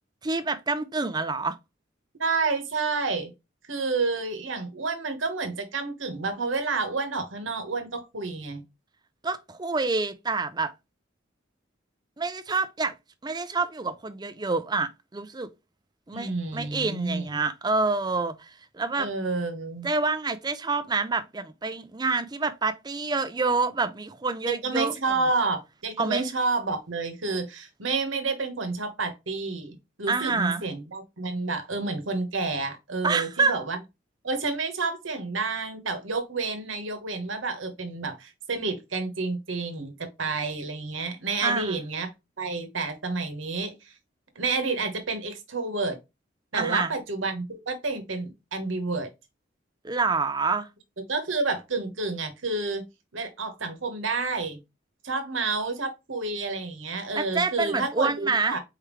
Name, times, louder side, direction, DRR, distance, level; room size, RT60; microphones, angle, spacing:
voice 1, 0.2-1.6 9.2-10.7 12.2-12.9 13.2-15.5 16.1-19.1 19.8-24.9 26.0-26.3 30.1-30.6 33.0-33.6 41.4-41.8 46.5-46.9 49.8-50.7 57.1-58.6, right 4 dB, 20° right, 0.5 m, -27 dB
voice 2, 2.2-3.3 3.6-8.6 16.1-17.4 19.0-19.9 24.6-33.8 34.2-42.1 42.4-43.9 44.3-46.0 46.5-49.1 51.1-52.8 53.1-54.6 55.0-58.6, right 3 dB, 90° right, 1.2 m, -30 dB
4.5 x 3.6 x 3.1 m
head